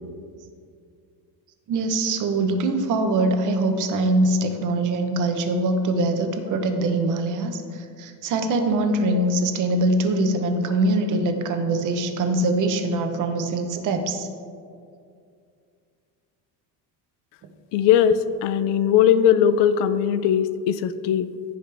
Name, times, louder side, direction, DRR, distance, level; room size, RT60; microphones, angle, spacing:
voice 1, 1.7-14.3, right 2 dB, 45° right, 6 dB, 1.0 m, -23 dB
voice 2, 17.7-21.3, left 9 dB, 80° left, 14 dB, 0.6 m, -19 dB
15.5 x 5.2 x 3.4 m, 2.3 s
cardioid pair, 140°, 41 cm